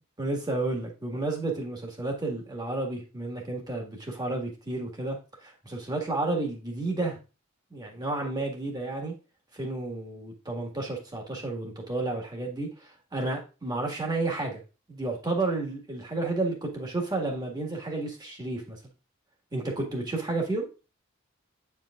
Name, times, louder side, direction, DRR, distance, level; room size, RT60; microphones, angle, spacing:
voice 1, 0.2-7.2 7.7-9.1 9.5-14.6 14.9-18.8 19.5-20.7, right 2 dB, 20° right, 0 dB, 1.6 m, -31 dB
8.8 x 4.7 x 2.4 m, 0.31 s
head